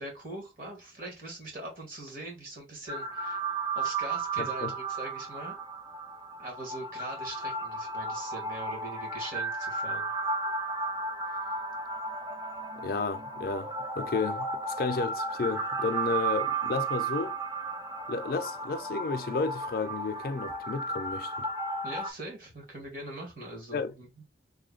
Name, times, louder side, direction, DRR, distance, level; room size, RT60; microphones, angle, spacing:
voice 1, 0.0-3.4 3.7-5.6 6.4-10.1 21.8-24.2, right 1 dB, 50° right, 1.6 m, -42 dB
sound 1, 2.9-22.1, right 3 dB, 20° right, 0.5 m, -34 dB
voice 2, 4.4-4.7 12.8-17.4 18.1-21.5 23.7-23.9, left 4 dB, 55° left, 0.4 m, -32 dB
3.4 x 2.2 x 3.6 m
head